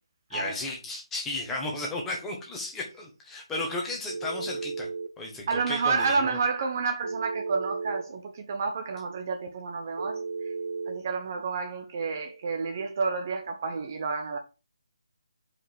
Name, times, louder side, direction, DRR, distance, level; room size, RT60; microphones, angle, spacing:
voice 1, 0.3-4.9 5.2-6.4, left 2 dB, 5° left, 1.2 m, -34 dB
Telephone, 4.1-5.1 7.0-8.1 10.0-11.0, right 4 dB, 70° right, 1.0 m, -34 dB
voice 2, 5.5-10.5 10.9-14.4, right 4 dB, 35° right, 0.7 m, -30 dB
4.9 x 4.9 x 4.6 m
figure-of-eight pair, 165°, 3 cm